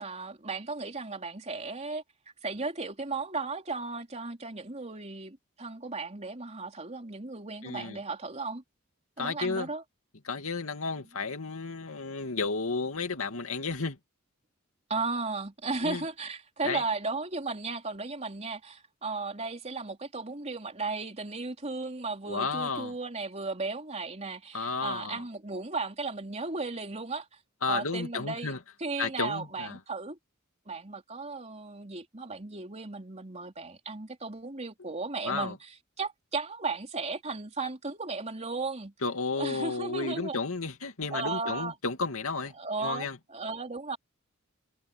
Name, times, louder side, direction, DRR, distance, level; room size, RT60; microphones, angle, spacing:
voice 1, 0.0-2.0 2.4-8.6 9.2-9.8 14.9-27.3 27.7-28.5 28.8-30.2 30.7-38.9 39.4-40.4 41.1-41.7 42.5-44.0, right 3 dB, 30° right, 3.7 m, -35 dB
voice 2, 7.6-8.0 9.2-9.7 10.2-14.0 15.8-16.0 16.6-16.8 22.3-22.9 24.5-25.2 27.6-28.6 29.0-29.8 35.2-35.6 39.0-42.5 42.8-43.2, left 4 dB, 85° left, 2.4 m, -32 dB
head